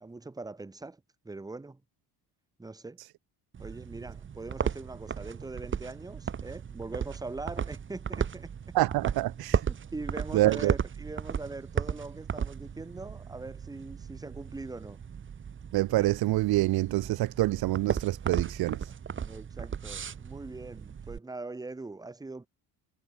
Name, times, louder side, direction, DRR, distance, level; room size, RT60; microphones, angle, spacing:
voice 1, 0.0-1.8 2.6-3.0 3.6-8.5 9.7-15.0 19.3-22.5, right 3 dB, 10° right, 1.7 m, -42 dB
sound 1, 3.5-21.2, right 7 dB, 30° right, 3.0 m, -36 dB
voice 2, 8.7-9.6 10.3-10.7 15.7-18.9, right 17 dB, 65° right, 0.8 m, -26 dB
cardioid pair, 170°, 40 cm